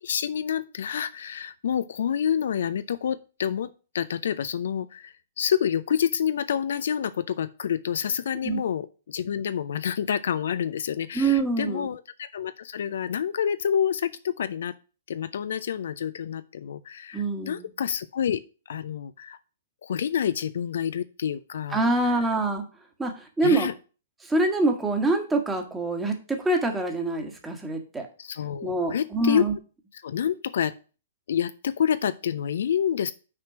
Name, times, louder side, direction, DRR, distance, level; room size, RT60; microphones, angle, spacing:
voice 1, 0.0-14.7 15.1-18.4 18.7-19.4 19.8-21.9 23.4-23.7 28.2-29.4 30.0-30.7 31.3-33.1, left 8 dB, 60° left, 13 dB, 0.4 m, -28 dB
voice 2, 11.1-11.9 17.1-17.7 21.7-22.6 23.0-23.7 24.2-28.1 28.6-29.5, right 2 dB, 10° right, 4 dB, 1.5 m, -25 dB
6.1 x 4.4 x 5.8 m, 0.35 s
figure-of-eight pair, 115°, 0 cm